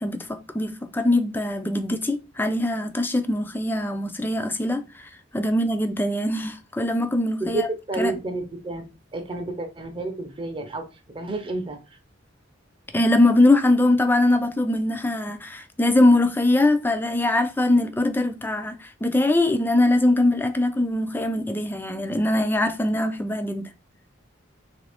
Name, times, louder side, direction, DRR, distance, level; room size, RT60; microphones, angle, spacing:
voice 1, 0.0-7.7 8.0-8.1 12.9-23.7, left 1 dB, 10° left, 0.4 m, -22 dB
voice 2, 7.4-8.9 9.1-12.0, right 2 dB, 25° right, 0.6 m, -30 dB
3.2 x 2.5 x 3.4 m
head